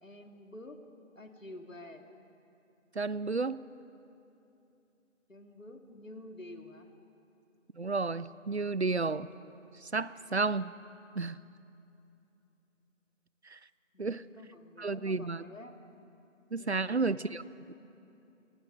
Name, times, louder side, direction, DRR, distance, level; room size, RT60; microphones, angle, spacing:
voice 1, 0.0-0.8 1.2-2.0 5.3-6.9 13.9-15.7 16.6-17.4, left 1 dB, 75° left, 5 dB, 2.1 m, -49 dB
voice 2, 2.9-3.6 7.7-9.3 9.8-10.7 11.2-11.4 13.4-13.6 14.0-14.2 14.8-15.4 16.5-17.4 17.7-17.8, right 3 dB, 55° right, 18 dB, 0.5 m, -32 dB
26.0 x 20.0 x 5.3 m, 2.8 s
figure-of-eight pair, 165°, 39 cm